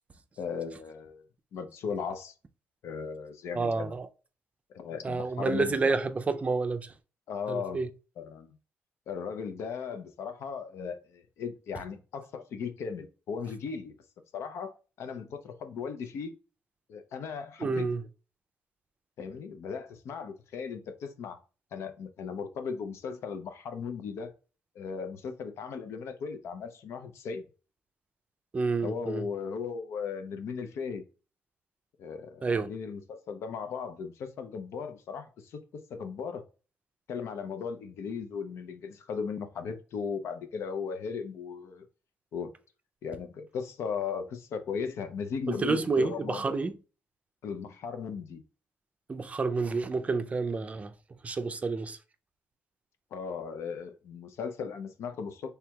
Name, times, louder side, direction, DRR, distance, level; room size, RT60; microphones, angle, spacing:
voice 1, 0.4-1.2 1.5-2.3 2.8-3.9 4.7-5.9 7.3-7.8 8.2-8.6 9.1-13.9 14.3-16.3 16.9-17.9 19.2-21.4 21.7-24.3 24.7-27.4 28.8-31.0 32.0-36.4 37.1-41.9 42.3-42.5 43.0-46.4 47.4-48.4 53.1-55.5, left 6 dB, 75° left, 0.6 m, -37 dB
voice 2, 3.5-4.1 5.0-6.9 7.5-7.9 17.6-18.0 28.5-29.2 32.4-32.7 45.6-46.7 49.1-50.9 51.2-52.0, right 4 dB, 30° right, 0.4 m, -29 dB
4.4 x 3.4 x 2.3 m
cardioid pair, 100°, 5 cm